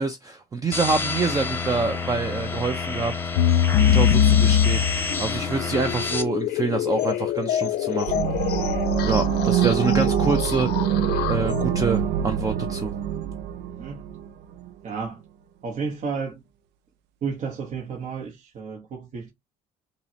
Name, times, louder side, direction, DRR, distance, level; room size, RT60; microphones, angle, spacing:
voice 1, 0.0-3.1 3.8-4.8 5.2-8.2 9.0-10.7 11.3-12.9, right 4 dB, 20° right, 0.5 m, -26 dB
sound 1, 0.7-6.2, left 4 dB, 15° left, 0.8 m, -29 dB
sound 2, 3.4-11.9, left 9 dB, 75° left, 0.5 m, -23 dB
sound 3, 8.1-14.7, right 9 dB, 90° right, 0.4 m, -25 dB
voice 2, 13.7-14.0 14.8-15.2 15.6-16.4 17.2-19.3, right 5 dB, 45° right, 0.9 m, -32 dB
5.4 x 2.1 x 2.7 m
cardioid pair, 110°, 17 cm